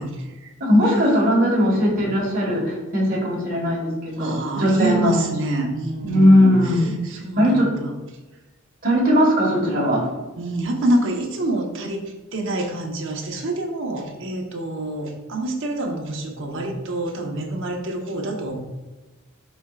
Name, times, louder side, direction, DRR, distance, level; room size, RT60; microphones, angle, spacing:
voice 1, 0.0-0.5 4.2-6.5 7.0-7.9 10.4-12.0 12.3-18.5, right 1 dB, 60° right, 1 dB, 1.1 m, -26 dB
voice 2, 0.6-5.2 6.0-6.9 7.4-7.8 8.8-10.1, equal, 40° right, -1 dB, 1.8 m, -18 dB
11.5 x 4.5 x 2.5 m, 1.2 s
head